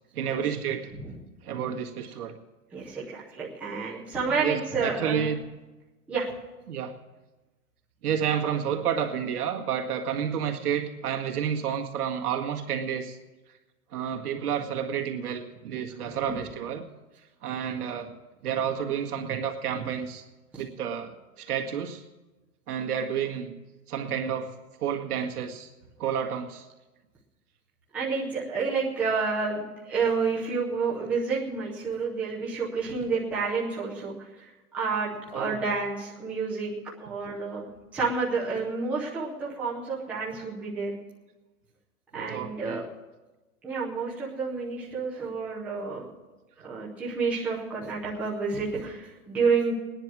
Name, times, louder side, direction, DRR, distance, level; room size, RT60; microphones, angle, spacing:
voice 1, 0.1-0.9 1.4-2.3 4.2-5.4 6.7-6.9 8.0-13.2 13.9-16.9 17.4-18.1 18.4-20.2 20.6-22.0 22.7-23.6 23.9-24.5 24.8-25.7 26.0-26.7 35.3-35.6 42.1-42.9, right 8 dB, 80° right, 2 dB, 2.0 m, -30 dB
voice 2, 2.7-5.2 6.1-6.3 16.0-16.4 20.5-20.6 27.9-36.7 37.0-40.9 42.1-42.8 43.6-46.1 46.6-49.7, right 4 dB, 5° right, -6 dB, 0.7 m, -30 dB
18.5 x 10.0 x 6.1 m, 1.2 s
hypercardioid pair, 175°, 44 cm